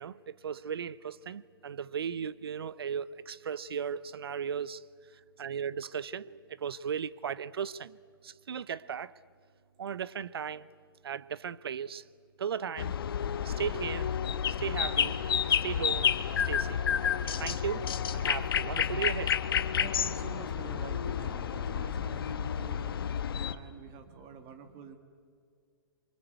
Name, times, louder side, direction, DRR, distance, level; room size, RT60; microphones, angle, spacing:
voice 1, 0.0-4.8 5.4-8.0 8.2-9.1 9.8-10.7 11.0-12.0 12.4-12.9 13.4-14.1 14.5-15.2 15.5-16.1 16.4-16.8 17.4-17.9 18.1-19.3, right 7 dB, 80° right, 0.8 m, -36 dB
sound 1, 12.8-23.5, left 8 dB, 70° left, 1.3 m, -30 dB
voice 2, 19.8-23.0 23.2-25.0, right 5 dB, 35° right, 2.1 m, -47 dB
26.5 x 24.0 x 8.1 m
hypercardioid pair, 130°, 13 cm